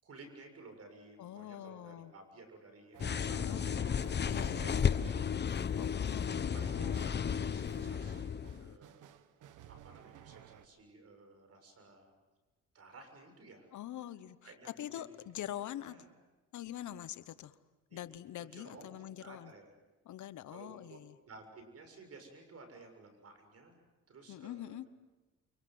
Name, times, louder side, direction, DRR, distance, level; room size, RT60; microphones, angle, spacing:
voice 1, 0.0-3.8 4.6-5.4 6.0-9.0 9.7-12.1 12.7-13.7 14.4-15.2 15.8-16.1 17.9-18.0 18.4-19.7 20.5-23.8 24.1-24.8, right 3 dB, 55° right, 6 dB, 7.0 m, -55 dB
voice 2, 1.2-2.1 3.3-3.7 4.2-4.7 5.8-7.3 13.7-16.0 16.5-17.6 17.9-19.5 20.0-21.2 24.3-24.9, left 12 dB, 75° left, 14 dB, 1.2 m, -44 dB
sound 1, 2.9-10.7, right 10 dB, 85° right, 1.4 m, -54 dB
sound 2, 3.0-8.8, left 7 dB, 35° left, 0.9 m, -33 dB
29.5 x 24.5 x 7.9 m, 1.2 s
cardioid pair, 90°, 30 cm